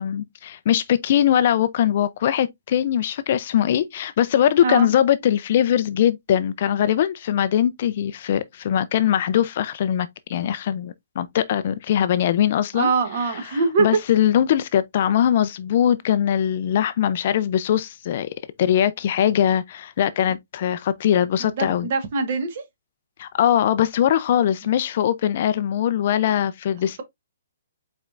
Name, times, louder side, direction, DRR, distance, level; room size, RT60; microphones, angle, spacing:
voice 1, 0.0-12.9 13.3-18.3 18.6-21.9 23.2-27.0, left 10 dB, 35° left, 0.3 m, -21 dB
voice 2, 12.7-13.9 21.4-22.6, right 4 dB, 35° right, 0.9 m, -23 dB
5.1 x 4.3 x 2.4 m
hypercardioid pair, 175°, 0 cm